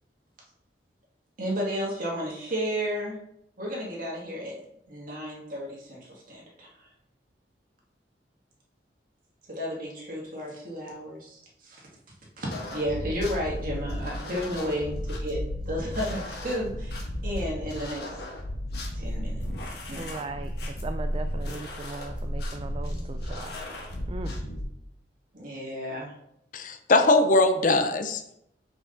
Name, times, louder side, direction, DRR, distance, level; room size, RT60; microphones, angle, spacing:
voice 1, 1.4-3.2 3.6-4.6 4.9-6.7 9.5-11.8 12.4-18.0 19.0-19.4 19.9-20.1 25.3-26.1, equal, 50° right, -3 dB, 1.9 m, -33 dB
sound 1, 12.5-24.6, equal, 65° left, 1.3 m, -34 dB
voice 2, 20.0-23.6 24.1-24.3, right 3 dB, 30° right, 7 dB, 0.3 m, -38 dB
voice 3, 26.5-28.3, left 2 dB, 50° left, 7 dB, 0.6 m, -21 dB
5.8 x 4.9 x 3.9 m, 0.77 s
head